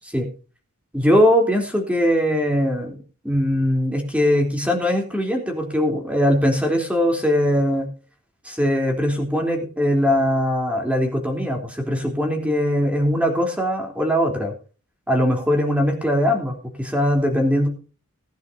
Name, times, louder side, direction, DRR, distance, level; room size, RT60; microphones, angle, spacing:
voice 1, 0.9-3.0 3.2-7.9 8.4-14.5 15.1-17.7, equal, 5° right, 2 dB, 3.4 m, -21 dB
19.5 x 11.0 x 2.7 m, 0.37 s
head